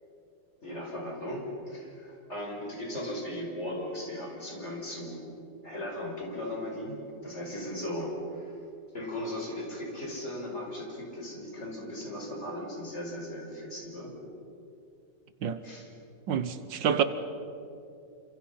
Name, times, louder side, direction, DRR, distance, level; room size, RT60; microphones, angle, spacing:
voice 1, 0.6-5.2 5.6-7.0 7.2-8.7 8.9-14.1 15.6-15.9, left 1 dB, 35° left, 5.7 m, -37 dB
voice 2, 16.3-17.0, right 8 dB, 85° right, 1.8 m, -27 dB
29.0 x 26.5 x 5.8 m
omnidirectional pair, 2.0 m